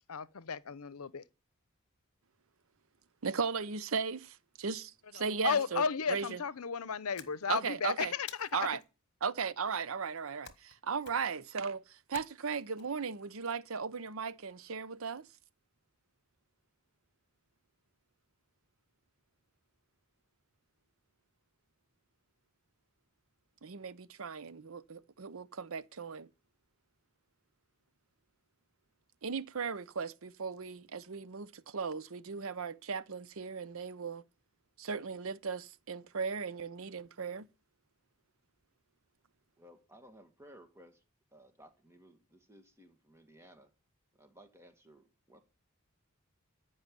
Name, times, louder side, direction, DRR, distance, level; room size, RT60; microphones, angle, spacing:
voice 1, 0.1-1.2 5.1-8.7, left 6 dB, 85° left, 0.8 m, -34 dB
voice 2, 3.2-5.8 6.1-6.4 7.5-8.1 8.5-8.8 9.2-15.3 23.6-26.3 29.2-34.2 34.8-37.5, right 5 dB, 70° right, 0.7 m, -37 dB
sound 1, 7.2-7.8 8.3-8.9 10.4-10.8 11.0-11.4 12.1-12.8, left 9 dB, 50° left, 1.4 m, -51 dB
voice 3, 39.6-41.0 41.3-43.7 44.1-45.4, equal, 10° right, 2.0 m, -58 dB
14.5 x 5.7 x 9.8 m
head